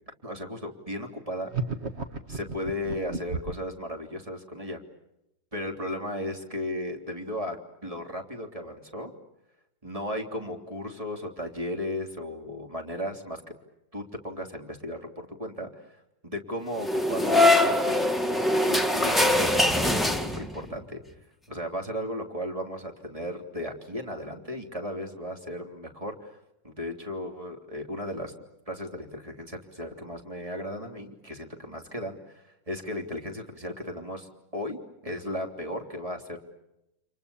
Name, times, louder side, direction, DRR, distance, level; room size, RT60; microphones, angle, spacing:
voice 1, 0.2-1.5 2.3-4.8 5.5-7.6 7.8-9.1 9.8-13.4 13.9-21.0 21.5-26.4 26.6-28.3 28.7-36.4, left 1 dB, 15° right, 3 dB, 3.4 m, -35 dB
sound 1, 1.5-3.7, right 4 dB, 35° right, 1.8 m, -33 dB
sound 2, 16.8-20.7, left 1 dB, ahead, 1.7 m, -23 dB
29.5 x 27.0 x 7.1 m, 0.89 s
omnidirectional pair, 2.0 m